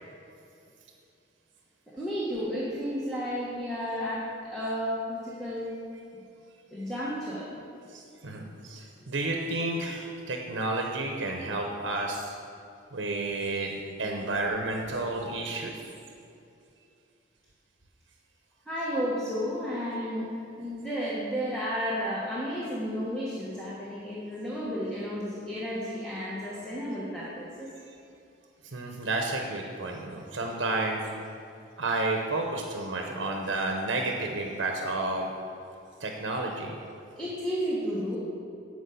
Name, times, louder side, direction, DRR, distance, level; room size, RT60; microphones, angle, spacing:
voice 1, 1.9-5.7 6.7-7.5 15.1-15.3 18.7-27.7 37.2-38.2, equal, 5° left, -8 dB, 1.4 m, -32 dB
voice 2, 7.9-12.3 12.9-15.8 28.6-31.0 31.8-35.3 36.0-36.7, right 2 dB, 70° right, 2 dB, 0.9 m, -31 dB
10.0 x 5.0 x 6.9 m, 2.6 s
head